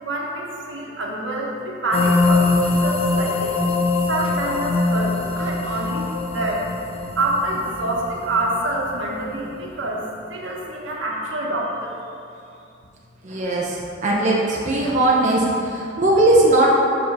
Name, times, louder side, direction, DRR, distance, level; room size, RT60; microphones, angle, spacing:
voice 1, 0.0-3.5 4.1-6.7 7.2-11.9, right 1 dB, 75° right, -2 dB, 1.2 m, -26 dB
sound 1, 1.9-9.7, left 3 dB, 30° left, 0.6 m, -23 dB
voice 2, 13.2-16.7, right 1 dB, 40° right, -4 dB, 0.8 m, -19 dB
6.1 x 5.5 x 5.5 m, 2.6 s
head